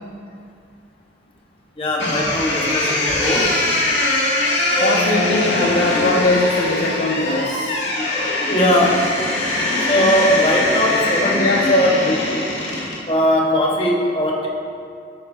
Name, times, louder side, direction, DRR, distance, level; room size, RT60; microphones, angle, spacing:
voice 1, 1.8-3.6 7.9-8.1 8.4-9.1 9.9-12.2 13.1-14.5, equal, 30° left, -2 dB, 1.3 m, -19 dB
sound 1, 2.0-13.0, left 2 dB, 70° left, 2.3 m, -21 dB
voice 2, 4.8-7.8 11.4-11.8, left 2 dB, 55° left, 0 dB, 0.6 m, -21 dB
12.5 x 9.0 x 2.8 m, 2.3 s
head